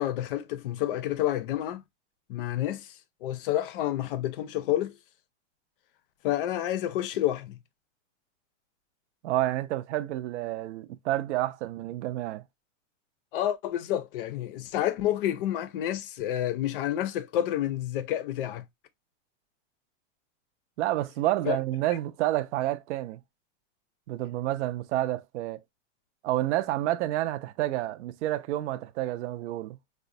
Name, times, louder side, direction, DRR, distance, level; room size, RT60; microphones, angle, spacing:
voice 1, 0.0-1.8 2.3-2.9 3.2-4.9 6.2-7.6 13.3-18.6 21.5-21.6, left 12 dB, 50° left, 0.5 m, -29 dB
voice 2, 9.2-12.4 20.8-23.2 24.1-25.6 26.2-29.8, right 15 dB, 65° right, 0.5 m, -29 dB
4.8 x 2.2 x 2.5 m
supercardioid pair, 170°, 37 cm